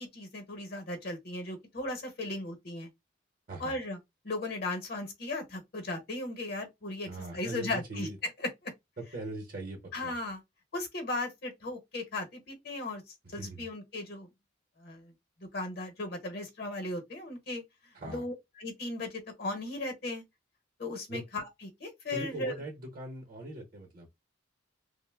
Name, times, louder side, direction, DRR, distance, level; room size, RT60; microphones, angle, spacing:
voice 1, 0.0-2.9 3.6-4.0 4.2-8.7 9.9-10.4 10.7-13.0 13.3-14.3 14.8-15.1 15.4-17.6 18.1-20.2 20.8-22.6, left 2 dB, 55° left, 0.8 m, -37 dB
voice 2, 7.1-8.2 9.0-10.1 13.4-13.6 17.9-18.2 21.1-21.2 22.1-24.1, right 2 dB, 50° right, 0.8 m, -40 dB
2.7 x 2.1 x 3.3 m
head